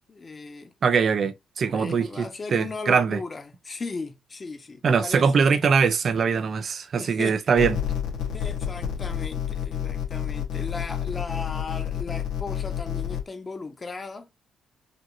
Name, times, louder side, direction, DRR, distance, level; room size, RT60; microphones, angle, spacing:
voice 1, 0.1-0.7 1.7-5.3 7.0-7.4 8.3-14.3, left 3 dB, 30° left, 1.2 m, -37 dB
voice 2, 0.8-3.2 4.8-7.8, right 6 dB, 50° right, 0.6 m, -22 dB
sound 1, 7.6-13.2, left 9 dB, 90° left, 1.4 m, -29 dB
5.1 x 2.9 x 2.7 m
cardioid pair, 90°, 0 cm